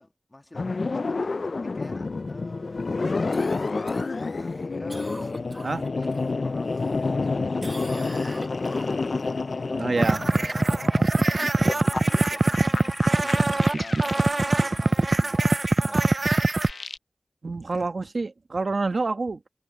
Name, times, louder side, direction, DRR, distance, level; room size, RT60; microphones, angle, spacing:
voice 1, 0.0-5.3 5.9-9.1 9.5-10.0 10.3-16.2, left 1 dB, 35° left, 2.0 m, -46 dB
sound 1, 0.5-14.8 16.4-17.0, left 3 dB, 70° left, 0.4 m, -29 dB
Cough, 3.3-6.3 6.7-7.3 7.6-9.3 13.7-13.8, right 1 dB, 25° right, 0.8 m, -43 dB
voice 2, 9.8-10.2 17.4-19.5, right 3 dB, 70° right, 1.1 m, -27 dB
sound 2, 10.0-16.7, right 2 dB, 50° right, 0.3 m, -22 dB
wide cardioid pair, 50°, 0 cm